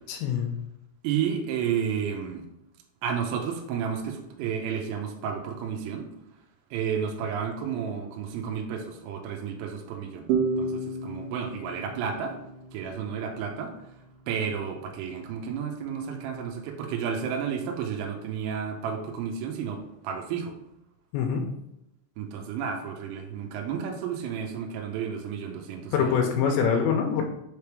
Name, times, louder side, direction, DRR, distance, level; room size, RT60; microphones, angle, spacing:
voice 1, 0.1-0.5 21.1-21.5 25.9-27.2, left 7 dB, 85° left, 2 dB, 2.7 m, -24 dB
voice 2, 1.0-2.5 3.0-6.1 6.7-12.4 12.7-13.7 14.3-20.5 22.2-26.2, right 7 dB, 85° right, 2 dB, 3.5 m, -32 dB
sound 1, 10.3-13.7, right 4 dB, 70° right, 2.7 m, -31 dB
7.3 x 3.4 x 4.6 m, 0.85 s
omnidirectional pair, 5.8 m